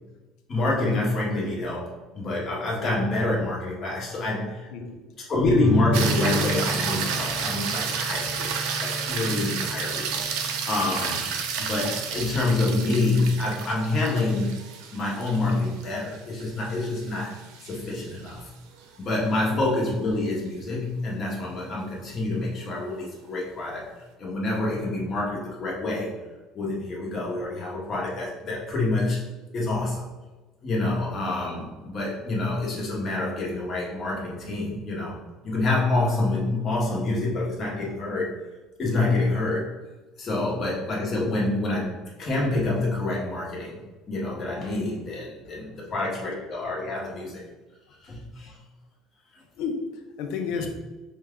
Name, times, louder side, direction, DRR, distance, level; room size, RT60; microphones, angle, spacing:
voice 1, 0.5-4.7 5.2-10.3 10.7-11.2 11.6-14.5 14.9-18.5 19.0-23.9 24.2-26.2 26.5-29.2 29.5-30.1 30.6-38.3 38.8-39.7 40.2-43.8 44.1-47.4 48.0-48.6, left 2 dB, 30° left, -3 dB, 1.0 m, -27 dB
sound 1, 5.6-16.6, right 1 dB, 15° right, 0.4 m, -34 dB
sound 2, 5.9-18.3 22.8-22.9, right 6 dB, 80° right, 0.5 m, -31 dB
voice 2, 49.6-50.7, left 5 dB, 65° left, 4 dB, 0.6 m, -32 dB
5.4 x 2.3 x 3.6 m, 1.2 s
cardioid pair, 170°, 0 cm